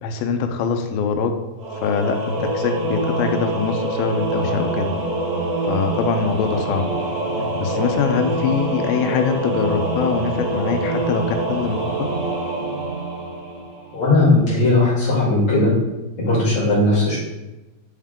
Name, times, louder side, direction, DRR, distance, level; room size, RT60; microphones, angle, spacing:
voice 1, 0.0-1.3 1.8-4.9 5.7-6.8 7.6-11.9, left 6 dB, 85° left, 6 dB, 2.5 m, -23 dB
Singing / Musical instrument, 1.6-14.0, right 2 dB, 65° right, 4.0 m, -25 dB
voice 2, 13.9-15.7 16.2-17.2, left 2 dB, 35° left, -7 dB, 2.3 m, -17 dB
8.2 x 3.6 x 3.5 m, 1.0 s
omnidirectional pair, 4.3 m